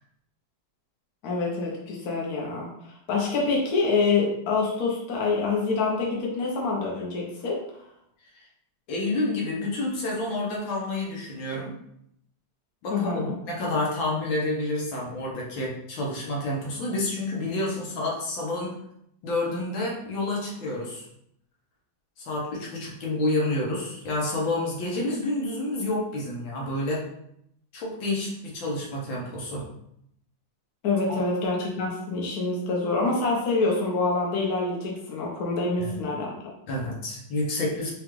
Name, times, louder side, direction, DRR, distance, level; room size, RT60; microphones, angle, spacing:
voice 1, 1.2-2.7 3.1-7.6 12.9-13.3 30.8-36.5, left 3 dB, 55° left, -2 dB, 1.2 m, -26 dB
voice 2, 8.9-11.7 12.8-18.7 19.2-21.1 22.2-27.0 27.7-29.6 31.1-31.2 35.8-35.9 36.7-37.9, left 2 dB, 75° left, -3 dB, 1.7 m, -29 dB
5.0 x 2.4 x 3.1 m, 0.74 s
omnidirectional pair, 2.2 m